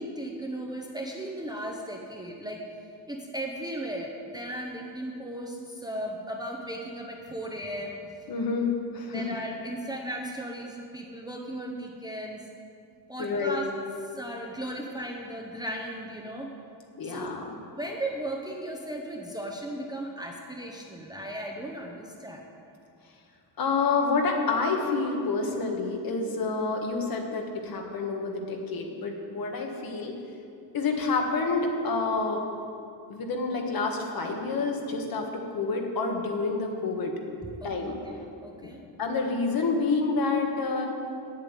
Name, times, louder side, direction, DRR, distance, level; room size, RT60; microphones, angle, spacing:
voice 1, 0.0-2.6 3.1-8.0 9.1-12.4 13.1-13.7 14.1-16.5 17.0-17.3 17.7-22.4 37.6-37.7 38.0-38.1 38.4-38.8, right 1 dB, 10° right, 0 dB, 0.7 m, -36 dB
voice 2, 8.3-9.2 13.2-13.6 17.0-17.5 23.6-30.1 30.7-32.4 33.1-35.3 35.5-37.1 37.6-38.0 39.0-40.9, left 4 dB, 50° left, 2 dB, 1.6 m, -28 dB
8.7 x 8.3 x 8.9 m, 2.5 s
cardioid pair, 180°, 45 cm